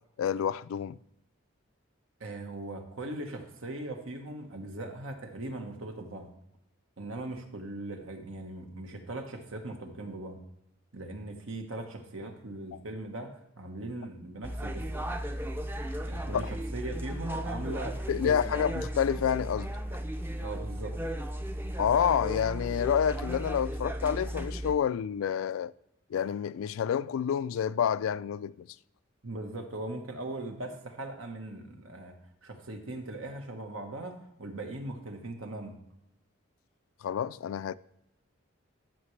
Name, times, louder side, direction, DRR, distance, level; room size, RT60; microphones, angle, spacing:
voice 1, 0.2-1.0 16.3-16.4 17.7-17.8 18.1-19.7 21.8-25.7 26.1-28.7 37.0-37.7, left 8 dB, 85° left, 0.3 m, -28 dB
voice 2, 2.2-6.3 7.0-10.4 10.9-14.9 16.0-18.6 20.4-21.0 29.2-32.2 32.4-35.8, right 2 dB, 85° right, 1.3 m, -39 dB
sound 1, 14.4-24.8, equal, 10° right, 0.5 m, -35 dB
14.0 x 5.8 x 3.2 m
head